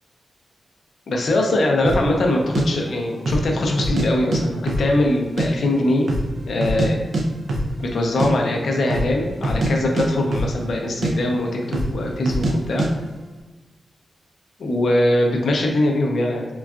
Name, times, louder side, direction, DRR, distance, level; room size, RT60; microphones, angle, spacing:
voice 1, 1.1-6.1 6.5-7.0 7.8-12.9 14.6-16.5, left 1 dB, 70° left, 1 dB, 0.5 m, -21 dB
sound 1, 1.8-2.1 2.5-2.6 3.2-3.5 3.8-4.4 4.7-5.5 5.7-5.8 6.1-6.9 7.1-7.2 7.5-7.7 8.0-8.3 8.8-9.1 9.4-10.8 11.0-11.1 11.7-12.0 12.3-12.5 12.8-12.9, right 1 dB, 65° right, 0.4 m, -23 dB
3.8 x 2.3 x 2.3 m, 1.2 s
wide cardioid pair, 120°, 0 cm